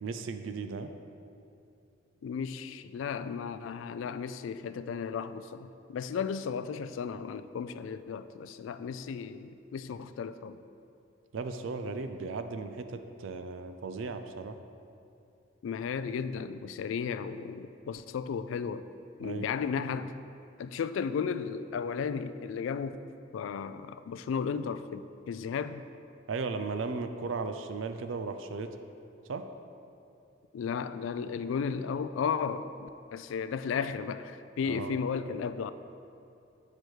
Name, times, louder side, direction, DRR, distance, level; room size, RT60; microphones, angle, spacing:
voice 1, 0.0-0.9 11.3-14.6 19.2-19.5 26.3-28.8 29.3-29.4 34.6-35.0, right 4 dB, 80° right, 8 dB, 0.4 m, -36 dB
voice 2, 2.2-10.6 15.6-18.9 19.2-20.1 20.6-23.0 23.3-25.8 30.5-35.7, left 6 dB, 80° left, 12 dB, 0.3 m, -34 dB
7.9 x 4.8 x 4.5 m, 2.6 s
head